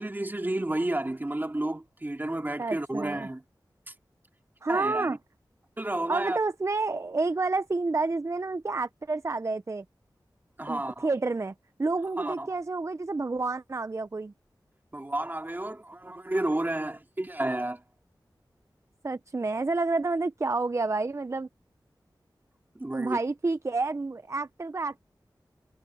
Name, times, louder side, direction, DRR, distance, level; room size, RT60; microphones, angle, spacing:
voice 1, 0.0-3.4 3.9-4.0 4.7-5.2 5.8-6.4 10.6-11.1 12.2-12.5 14.9-17.8 22.7-23.2, right 1 dB, 25° right, 2.5 m, -31 dB
voice 2, 2.6-3.3 4.6-5.2 6.1-9.8 10.7-11.5 11.8-14.3 19.0-21.5 22.9-25.0, right 3 dB, 40° right, 0.6 m, -29 dB
wide cardioid pair, 70°, 8 cm